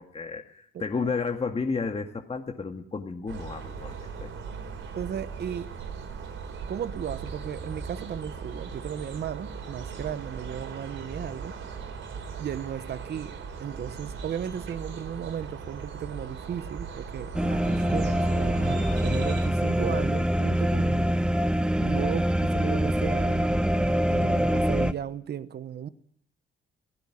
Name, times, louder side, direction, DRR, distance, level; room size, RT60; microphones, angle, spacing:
voice 1, 0.0-4.3, left 4 dB, 30° left, 2.1 m, -32 dB
sound 1, 3.3-19.5, right 5 dB, 75° right, 4.3 m, -39 dB
voice 2, 5.0-5.7 6.7-11.5 12.4-13.3 13.6-21.1 21.8-23.5 24.1-25.9, right 9 dB, 55° right, 1.1 m, -35 dB
sound 2, 17.3-24.9, equal, 5° right, 1.1 m, -24 dB
18.0 x 16.0 x 9.9 m
cardioid pair, 90°, 20 cm